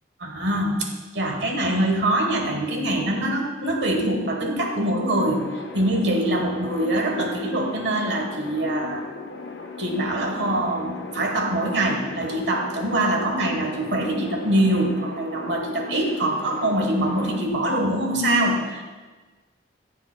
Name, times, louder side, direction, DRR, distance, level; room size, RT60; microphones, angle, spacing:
voice 1, 0.2-5.5 5.7-9.0 9.8-18.8, right 1 dB, 75° right, 2 dB, 1.3 m, -24 dB
sound 1, 5.1-17.5, left 3 dB, 70° left, 0.8 m, -37 dB
14.0 x 7.1 x 2.2 m, 1.3 s
head